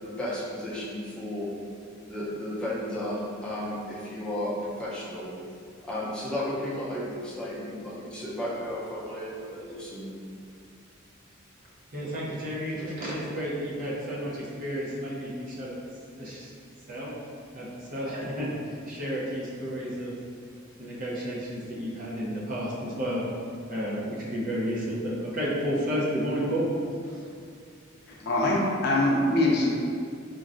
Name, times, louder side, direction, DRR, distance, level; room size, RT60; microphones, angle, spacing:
voice 1, 0.0-1.5 2.1-5.3 5.8-10.1, left 1 dB, 5° left, -8 dB, 0.6 m, -33 dB
voice 2, 11.9-15.7 16.2-16.5 16.9-17.1 17.5-20.1 20.8-23.2 23.7-26.6 27.1-27.3, equal, 45° right, -6 dB, 0.6 m, -31 dB
voice 3, 28.1-29.7, left 1 dB, 55° left, -4 dB, 0.5 m, -23 dB
3.8 x 2.1 x 2.5 m, 2.4 s
head